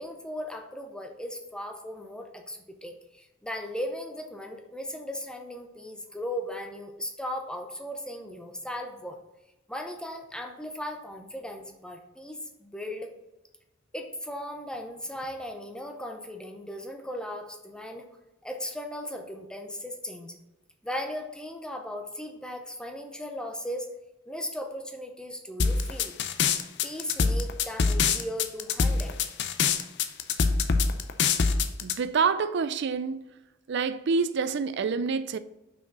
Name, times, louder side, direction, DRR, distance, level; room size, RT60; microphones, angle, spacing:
voice 1, 0.0-9.2 9.7-13.1 13.9-18.0 18.4-20.4 20.8-23.9 24.3-26.1 26.8-29.2, left 1 dB, 5° left, 0.7 m, -37 dB
sound 1, 25.6-31.9, left 5 dB, 60° left, 0.6 m, -24 dB
voice 2, 31.8-33.2 33.7-35.4, right 5 dB, 55° right, 0.4 m, -27 dB
5.9 x 4.9 x 6.1 m
head